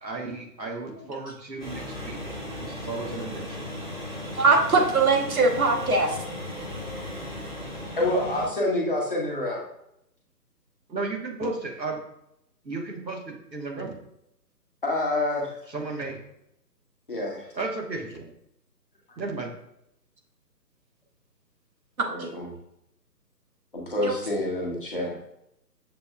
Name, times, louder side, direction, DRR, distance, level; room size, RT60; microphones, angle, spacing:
voice 1, 0.0-2.2 2.6-3.6 10.9-12.0 12.6-14.0 15.7-16.2 17.5-18.3 19.2-19.5, right 3 dB, 85° right, 0 dB, 1.3 m, -34 dB
sound 1, 1.6-8.5, left 1 dB, 30° right, 0.8 m, -36 dB
voice 2, 4.4-6.1 22.2-22.3 24.0-24.1, right 3 dB, 55° right, 2 dB, 1.1 m, -21 dB
voice 3, 8.0-9.6 14.8-15.5 17.1-17.5 22.1-22.5 23.7-25.2, left 1 dB, 35° left, -2 dB, 0.9 m, -27 dB
6.6 x 3.3 x 2.3 m, 0.78 s
figure-of-eight pair, 145°, 50 cm